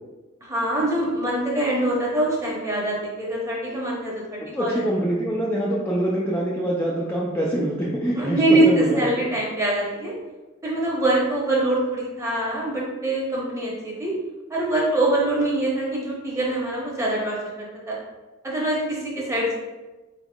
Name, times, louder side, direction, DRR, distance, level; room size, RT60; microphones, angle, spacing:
voice 1, 0.4-4.8 7.5-7.6 8.1-10.1 10.6-14.1 14.5-18.0 18.4-19.5, right 1 dB, 15° right, -4 dB, 0.9 m, -24 dB
voice 2, 4.5-9.2, right 1 dB, 10° left, -6 dB, 0.4 m, -25 dB
4.1 x 3.5 x 2.3 m, 1.2 s
head